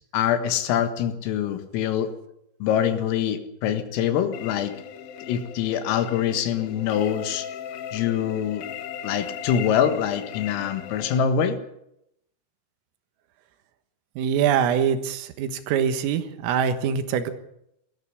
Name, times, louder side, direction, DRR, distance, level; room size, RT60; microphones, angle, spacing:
voice 1, 0.1-2.1 2.6-4.7 5.3-7.5 7.9-8.6 9.0-11.6, left 9 dB, 85° left, 9 dB, 4.3 m, -24 dB
sound 1, 4.3-11.2, left 9 dB, 70° left, 2.3 m, -38 dB
voice 2, 14.2-17.3, right 8 dB, 85° right, 10 dB, 4.1 m, -24 dB
18.0 x 14.5 x 9.9 m, 0.80 s
omnidirectional pair, 5.8 m